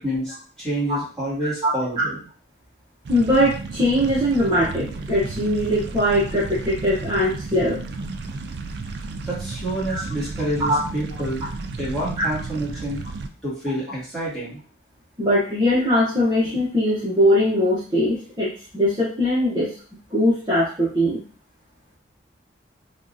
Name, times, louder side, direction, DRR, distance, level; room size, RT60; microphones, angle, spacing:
voice 1, 0.0-2.2 9.2-11.5 11.8-13.0 13.4-14.6, right 1 dB, 5° left, -9 dB, 1.5 m, -28 dB
voice 2, 1.4-2.1 3.1-7.9 9.9-10.0 10.7-10.8 12.2-12.3 15.2-19.7 20.1-21.2, equal, 20° right, -9 dB, 0.8 m, -21 dB
sound 1, 3.1-13.3, right 3 dB, 60° right, 0.3 m, -33 dB
3.6 x 2.3 x 2.6 m, 0.39 s
head